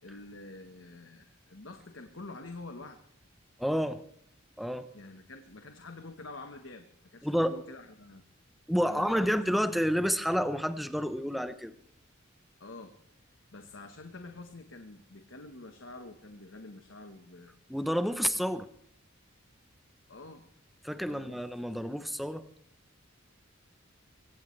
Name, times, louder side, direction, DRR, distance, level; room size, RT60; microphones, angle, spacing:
voice 1, 0.0-3.0 4.9-8.2 8.8-9.4 12.6-12.9 13.5-17.5 18.3-18.5 20.1-20.4 21.0-21.4, left 2 dB, 65° left, 6 dB, 1.2 m, -47 dB
voice 2, 3.6-4.0 4.6-4.9 7.2-7.6 8.7-11.7 17.7-18.6 20.8-22.4, equal, ahead, 11 dB, 0.8 m, -29 dB
22.5 x 17.5 x 3.3 m, 0.67 s
head